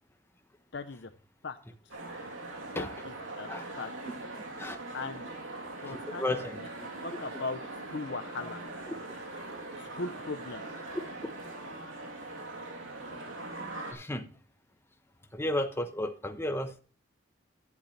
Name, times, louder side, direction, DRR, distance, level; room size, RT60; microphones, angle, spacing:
voice 1, 0.7-1.1 1.4-1.6 2.7-3.5 3.8-3.9 4.9-5.3 5.8-7.6 7.9-8.6 9.7-10.6, left 3 dB, 60° left, 9 dB, 0.7 m, -39 dB
sound 1, 1.9-13.9, right 2 dB, 80° right, 3.1 m, -41 dB
voice 2, 5.9-6.6 13.9-14.3 15.3-16.8, left 1 dB, 10° left, 7 dB, 1.0 m, -33 dB
11.5 x 10.5 x 3.2 m, 0.38 s
head